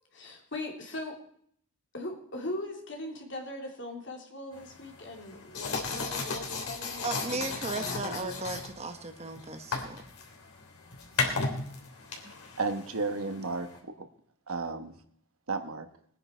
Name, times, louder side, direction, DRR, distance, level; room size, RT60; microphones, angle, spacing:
voice 1, 0.1-1.1 1.9-8.5, left 1 dB, 55° left, 0 dB, 3.3 m, -40 dB
sound 1, 4.5-13.8, left 4 dB, 85° left, 3.1 m, -36 dB
voice 2, 7.0-10.0 11.2-11.4 12.2-12.3, right 3 dB, 30° right, 7 dB, 1.0 m, -36 dB
voice 3, 12.6-14.1 14.5-14.9 15.5-15.9, right 3 dB, 75° right, 8 dB, 1.2 m, -33 dB
21.0 x 9.7 x 4.5 m, 0.64 s
head